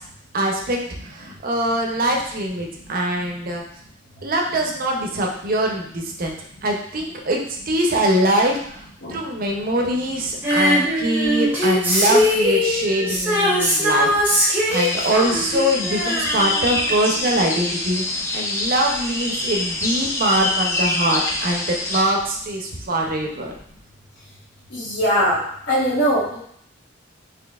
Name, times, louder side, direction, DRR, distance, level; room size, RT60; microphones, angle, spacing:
voice 1, 0.3-3.6 4.2-6.4 6.6-7.4 7.7-23.5, right 1 dB, 45° right, 1 dB, 0.6 m, -23 dB
Female singing, 10.4-17.0 17.3-17.4, equal, 10° right, 0.8 m, -21 dB
sound 1, 14.7-22.0, left 2 dB, 15° left, 0.3 m, -25 dB
voice 2, 24.7-25.4 25.7-26.4, equal, 55° left, -7 dB, 1.1 m, -20 dB
4.0 x 2.9 x 2.3 m, 0.65 s
head